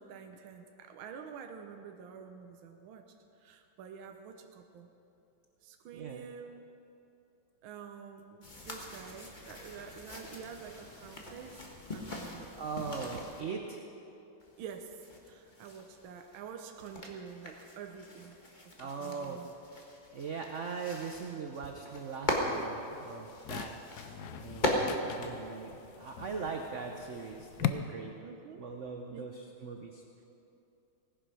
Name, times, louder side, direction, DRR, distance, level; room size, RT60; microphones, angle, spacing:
voice 1, 0.0-3.0 3.4-4.9 5.6-6.7 7.6-12.5 14.6-14.9 15.2-18.4 18.6-19.5 28.2-28.6 29.1-29.3, right 7 dB, 75° right, 5 dB, 1.5 m, -48 dB
voice 2, 5.9-6.3 12.0-12.2 12.5-13.8 18.8-19.4 20.1-23.8 24.2-25.7 26.0-28.1 28.6-30.0, right 5 dB, 55° right, 3 dB, 0.8 m, -40 dB
sound 1, 8.4-13.4 14.4-26.2, left 1 dB, 25° left, 1.4 m, -40 dB
sound 2, 22.5-27.7, left 13 dB, 75° left, 0.9 m, -41 dB
17.5 x 10.0 x 6.2 m, 2.8 s
omnidirectional pair, 2.3 m